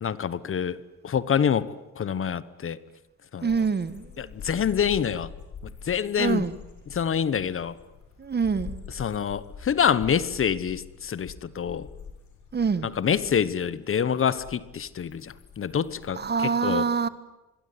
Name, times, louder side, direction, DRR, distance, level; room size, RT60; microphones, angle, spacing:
voice 1, 0.0-0.8 1.0-2.8 3.3-3.5 4.2-5.3 5.8-6.4 6.9-7.8 9.0-11.9 13.0-16.2 16.6-16.8, left 8 dB, 45° left, 1.1 m, -26 dB
voice 2, 3.4-4.3 6.2-6.6 8.2-8.9 12.5-13.0 16.1-17.1, right 5 dB, 35° right, 1.4 m, -26 dB
sound 1, 3.5-16.1, left 6 dB, 70° left, 6.7 m, -45 dB
25.5 x 22.0 x 9.6 m
cardioid pair, 90°, 30 cm